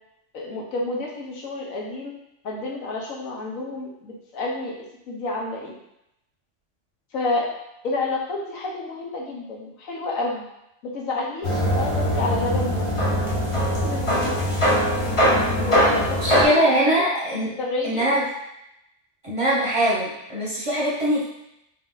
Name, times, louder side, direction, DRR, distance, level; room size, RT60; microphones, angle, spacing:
voice 1, 0.3-2.1 2.4-5.8 7.1-7.5 7.8-10.4 10.8-13.2 13.8-14.4 15.5-17.0 17.6-18.1 19.4-19.5, left 2 dB, 85° left, -2 dB, 1.3 m, -29 dB
sound 1, 11.4-16.4, equal, 25° left, 0.9 m, -21 dB
voice 2, 16.2-17.5 17.8-18.2 19.2-21.3, equal, 30° right, -7 dB, 0.8 m, -22 dB
4.1 x 2.6 x 3.8 m, 0.83 s
omnidirectional pair, 1.4 m